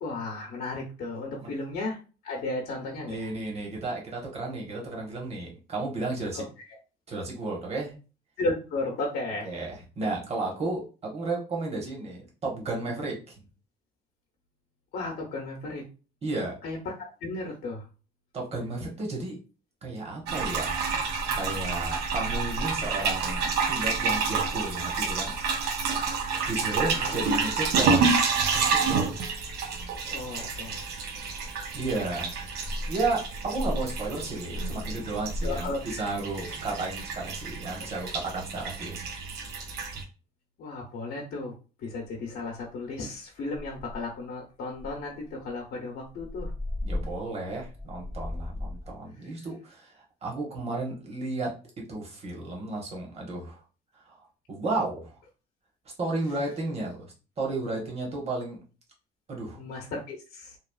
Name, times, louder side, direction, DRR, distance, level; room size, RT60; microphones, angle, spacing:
voice 1, 0.0-2.0 2.2-3.3 6.3-6.4 8.4-9.6 14.9-15.8 16.6-17.8 27.0-27.2 30.0-30.9 35.4-36.1 36.4-36.5 38.5-38.6 40.6-41.5 41.8-46.5 49.2-49.4 59.5-60.6, left 2 dB, 65° left, -1 dB, 0.8 m, -34 dB
voice 2, 3.1-6.4 7.1-7.9 9.4-13.3 16.2-16.5 18.3-19.4 19.8-25.4 26.5-28.1 28.5-29.2 31.4-31.5 31.7-32.3 32.9-39.0 46.8-51.5 51.9-53.6 54.1-54.2 54.5-55.1 56.0-57.1 57.4-58.6 59.3-59.6, right 2 dB, 35° right, -1 dB, 1.2 m, -33 dB
sound 1, 20.3-40.0, right 4 dB, 80° right, 0.6 m, -29 dB
sound 2, 42.6-42.8 43.1-43.2 43.5-44.2 44.7-48.9, left 1 dB, 15° right, 0.7 m, -37 dB
3.1 x 2.3 x 2.3 m, 0.34 s
cardioid pair, 110°, 17 cm